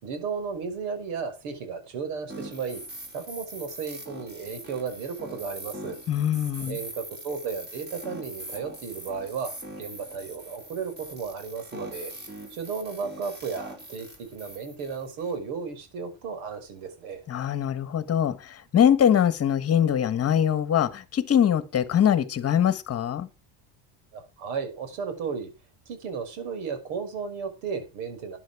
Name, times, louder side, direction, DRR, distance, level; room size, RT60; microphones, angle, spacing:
voice 1, 0.0-2.8 3.1-6.0 6.7-12.1 12.5-14.1 14.3-17.2 24.1-25.5 25.9-28.4, right 5 dB, 75° right, 5.5 m, -34 dB
sound 1, 2.3-15.3, right 1 dB, 20° right, 5.0 m, -42 dB
voice 2, 6.1-6.8 17.3-18.4 18.7-23.3, left 9 dB, 30° left, 1.6 m, -22 dB
13.0 x 10.5 x 4.9 m
cardioid pair, 140°, 49 cm